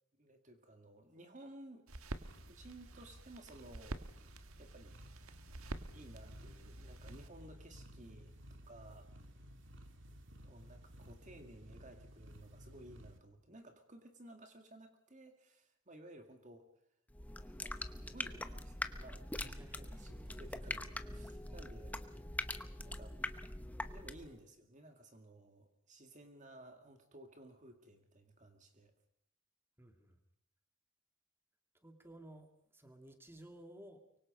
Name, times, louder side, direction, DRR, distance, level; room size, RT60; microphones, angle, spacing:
voice 1, 0.2-1.8 2.4-5.0 5.9-8.4 8.6-9.1 10.4-16.7 17.6-17.7 18.1-19.3 19.5-22.0 22.7-23.2 23.9-28.9, right 1 dB, 35° right, 5 dB, 2.0 m, -56 dB
sound 1, 1.9-7.3, right 1 dB, 75° right, 1.5 m, -49 dB
sound 2, 2.2-13.2, equal, 55° right, 2.6 m, -55 dB
sound 3, 17.1-24.4, left 1 dB, 5° left, 0.9 m, -43 dB
voice 2, 19.4-19.9 21.5-21.6 29.8-30.2 31.7-32.5 32.7-34.0, right 1 dB, 10° right, 4 dB, 2.3 m, -55 dB
24.0 x 24.0 x 5.3 m, 0.77 s
head